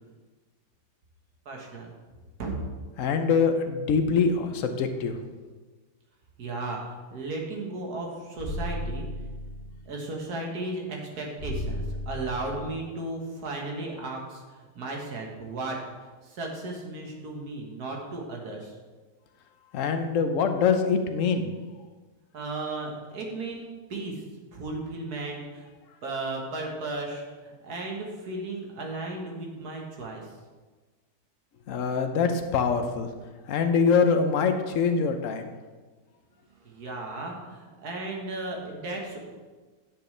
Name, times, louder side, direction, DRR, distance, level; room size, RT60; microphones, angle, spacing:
voice 1, 1.5-1.9 2.4-2.6 6.4-9.0 9.9-14.4 14.8-15.8 16.2-18.8 22.3-24.2 24.5-25.7 26.0-30.3 36.6-39.3, right 2 dB, 65° right, 0 dB, 1.8 m, -35 dB
voice 2, 3.0-5.2 19.7-21.5 31.7-33.1 33.5-35.5, left 5 dB, 60° left, 7 dB, 0.9 m, -24 dB
sound 1, 8.4-9.8 11.4-12.8, left 1 dB, 30° left, 2.4 m, -34 dB
10.0 x 6.8 x 3.3 m, 1.3 s
omnidirectional pair, 1.8 m